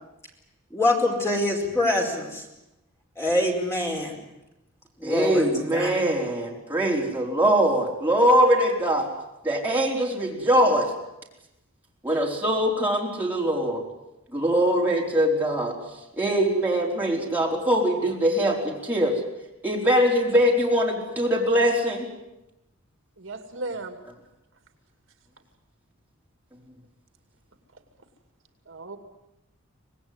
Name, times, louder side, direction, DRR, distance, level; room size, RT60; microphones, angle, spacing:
voice 1, 0.7-2.4 3.2-4.2 5.0-5.9, left 1 dB, 10° left, 0 dB, 4.7 m, -25 dB
voice 2, 5.0-9.1 9.4-10.9 12.0-13.8 14.3-15.8 16.2-19.1 19.6-22.0, equal, 10° right, -3 dB, 4.6 m, -22 dB
voice 3, 23.2-24.0 28.7-29.0, right 2 dB, 60° right, 6 dB, 2.5 m, -35 dB
25.5 x 19.5 x 9.7 m, 0.92 s
head